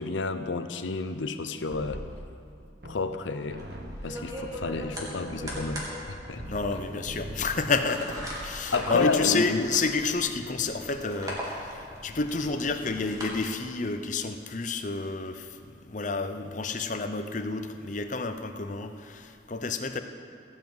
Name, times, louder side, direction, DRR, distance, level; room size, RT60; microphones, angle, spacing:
voice 1, 0.0-2.0 2.8-3.6 4.0-5.8 6.1-6.5 8.7-9.7, left 4 dB, 80° left, 9 dB, 0.7 m, -30 dB
sound 1, 1.7-3.2 3.5-6.8 7.1-7.6 8.0-8.5, right 1 dB, 55° right, 1.3 m, -41 dB
sound 2, 3.6-13.3, equal, 20° right, 2.2 m, -39 dB
voice 2, 6.5-15.5 15.8-20.0, left 4 dB, 40° left, 8 dB, 0.7 m, -30 dB
17.0 x 7.5 x 7.9 m, 2.5 s
head